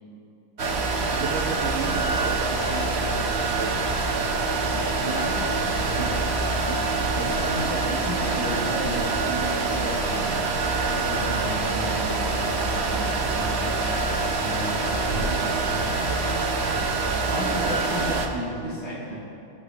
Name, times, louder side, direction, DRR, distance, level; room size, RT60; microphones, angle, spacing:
sound 1, 0.6-18.3, right 3 dB, 45° right, 1.0 m, -25 dB
voice 1, 0.8-3.9 17.2-18.1, right 4 dB, 80° right, 5 dB, 2.0 m, -34 dB
voice 2, 4.7-6.2 6.7-13.8 14.4-15.9 17.3-19.2, equal, 85° left, -7 dB, 4.3 m, -34 dB
22.0 x 11.0 x 3.5 m, 2.6 s
omnidirectional pair, 2.2 m